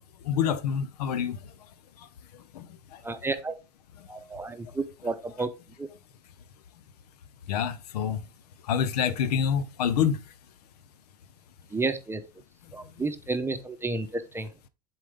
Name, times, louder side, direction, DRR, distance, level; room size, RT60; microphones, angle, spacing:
voice 1, 0.2-1.4 2.5-2.7 2.9-3.0 7.5-8.2 8.7-10.2, left 8 dB, 75° left, 0.7 m, -26 dB
voice 2, 3.0-3.5 4.1-5.5 5.8-5.9 11.7-12.2 12.7-14.5, right 3 dB, 10° right, 0.8 m, -31 dB
7.4 x 4.0 x 3.6 m
hypercardioid pair, 85°, 20 cm